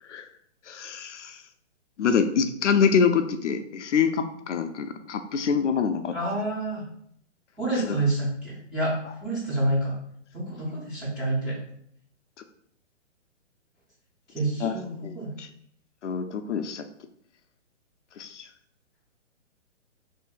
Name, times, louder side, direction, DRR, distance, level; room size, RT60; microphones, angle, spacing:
voice 1, 0.7-1.4 2.0-6.1 7.7-8.0 14.6-15.5 16.0-16.9 18.2-18.5, left 6 dB, 70° left, 8 dB, 0.5 m, -26 dB
voice 2, 6.1-6.8 7.6-8.9 9.2-9.9 10.3-11.5 14.3-15.3, right 2 dB, ahead, -12 dB, 0.4 m, -28 dB
2.7 x 2.6 x 3.6 m, 0.68 s
hypercardioid pair, 130°, 37 cm